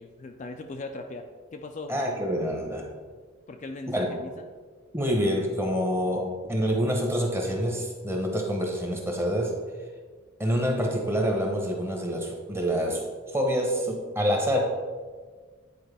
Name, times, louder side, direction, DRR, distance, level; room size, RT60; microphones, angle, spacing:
voice 1, 0.0-2.0 3.5-4.5, left 2 dB, 35° left, 4 dB, 0.3 m, -39 dB
voice 2, 1.9-2.9 3.9-4.1 4.9-9.6 10.4-14.6, equal, 10° right, 1 dB, 0.9 m, -27 dB
9.4 x 4.4 x 3.4 m, 1.5 s
head